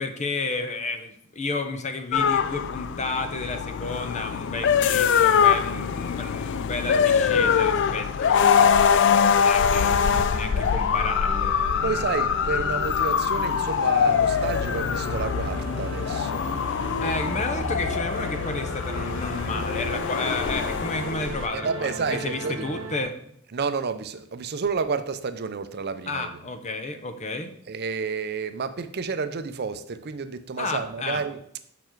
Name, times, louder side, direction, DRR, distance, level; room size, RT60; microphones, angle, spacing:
voice 1, 0.0-9.9 10.3-12.1 17.0-23.2 26.1-27.5 30.6-31.2, left 3 dB, 35° left, 0.7 m, -32 dB
sound 1, 2.1-21.5, left 7 dB, 60° left, 0.4 m, -23 dB
sound 2, 9.8-23.0, right 2 dB, 65° right, 1.2 m, -36 dB
voice 2, 11.8-16.5 21.5-22.7 23.5-26.4 27.7-31.4, right 5 dB, 50° right, 0.6 m, -30 dB
7.0 x 5.8 x 4.5 m
head